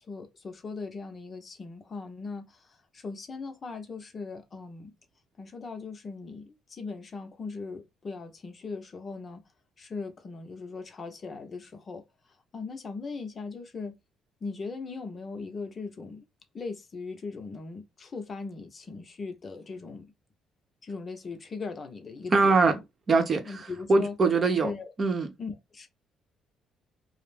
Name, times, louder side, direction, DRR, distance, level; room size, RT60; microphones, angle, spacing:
voice 1, 0.0-2.6 2.9-4.9 5.4-9.4 9.8-12.0 12.5-13.9 14.4-16.2 16.5-20.1 20.8-22.8 23.4-24.1 24.6-24.9 25.4-25.9, left 4 dB, 40° left, 0.6 m, -39 dB
voice 2, 22.3-22.8 23.1-24.7 25.0-25.3, right 3 dB, 45° right, 0.7 m, -23 dB
2.4 x 2.0 x 3.3 m
supercardioid pair, 65°, 0 cm